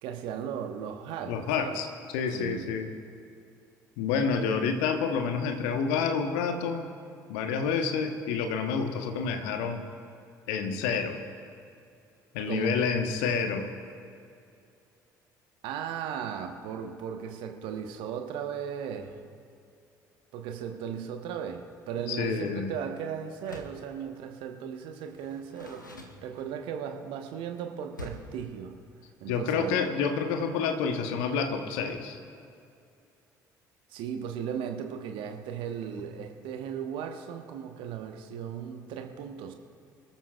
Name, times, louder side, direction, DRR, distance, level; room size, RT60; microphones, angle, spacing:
voice 1, 0.0-1.8 2.3-2.7 12.5-12.9 15.6-19.2 20.3-28.8 29.2-29.8 33.9-39.5, right 8 dB, 60° right, 5 dB, 1.2 m, -36 dB
voice 2, 1.3-2.9 4.0-6.9 7.3-9.8 10.5-11.2 12.3-13.7 22.1-22.7 29.3-32.2, left 5 dB, 65° left, 5 dB, 1.2 m, -29 dB
Door, 23.4-23.9 25.1-26.8 27.9-28.4, left 2 dB, 85° left, 0.9 m, -45 dB
25.5 x 13.0 x 2.4 m, 2.5 s
figure-of-eight pair, 55°, 10 cm